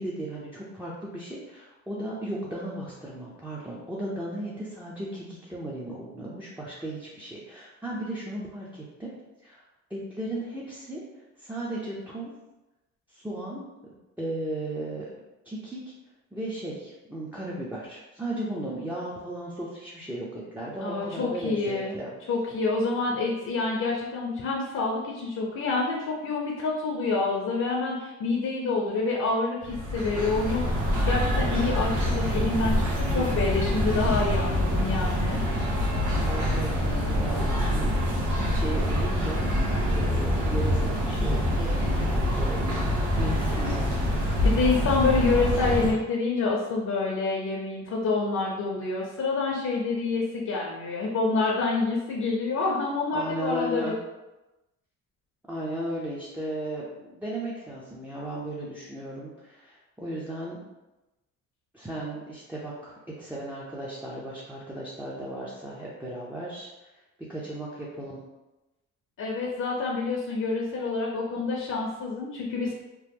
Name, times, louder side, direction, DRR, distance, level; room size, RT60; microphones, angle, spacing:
voice 1, 0.0-9.1 9.4-9.6 9.9-12.3 13.1-15.1 15.4-15.8 16.3-22.1 36.2-37.9 38.5-39.5 39.9-42.8 43.2-44.0 53.1-54.0 55.5-60.6 61.7-67.0 67.3-68.2, right 1 dB, 5° right, -7 dB, 0.5 m, -36 dB
voice 2, 20.8-22.0 22.3-35.4 44.4-53.9 69.2-72.7, left 3 dB, 55° left, -2 dB, 0.7 m, -27 dB
sound 1, 29.6-45.9, equal, 85° right, 1.0 m, -25 dB
3.0 x 2.0 x 3.4 m, 1.0 s
cardioid pair, 90°, 30 cm